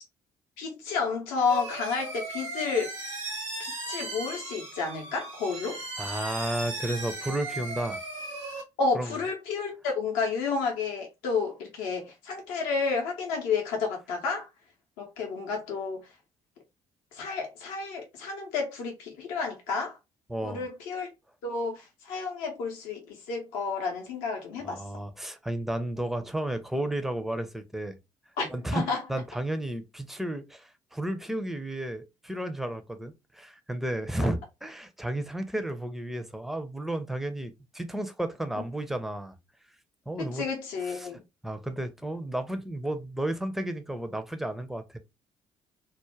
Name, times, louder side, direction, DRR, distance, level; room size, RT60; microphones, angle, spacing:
voice 1, 0.6-2.9 3.6-5.8 8.8-14.5 15.0-16.1 17.1-20.0 20.4-21.1 21.4-25.0 28.4-29.0 40.2-41.2, left 4 dB, 65° left, 0.6 m, -31 dB
sound 1, 1.5-8.6, right 2 dB, 85° right, 1.0 m, -37 dB
voice 2, 6.0-8.0 8.9-9.1 20.3-20.6 24.6-28.0 28.5-39.3 40.1-40.5 41.4-45.0, right 1 dB, ahead, 0.5 m, -33 dB
2.4 x 2.1 x 3.1 m
figure-of-eight pair, 45°, 16 cm